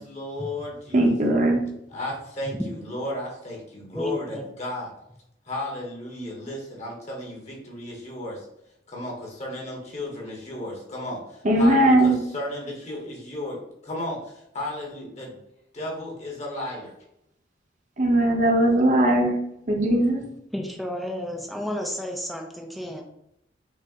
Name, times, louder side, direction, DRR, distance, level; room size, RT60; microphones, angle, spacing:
voice 1, 0.0-1.1 1.9-4.9 5.4-8.4 8.9-15.4 15.7-16.9, left 1 dB, 40° left, -1 dB, 1.0 m, -34 dB
voice 2, 0.9-1.6 11.4-12.2 18.0-19.4 19.6-20.2, right 1 dB, 40° right, 1 dB, 0.8 m, -19 dB
voice 3, 3.9-4.5 20.5-23.0, equal, ahead, 1 dB, 0.4 m, -32 dB
4.9 x 2.0 x 3.6 m, 0.77 s
head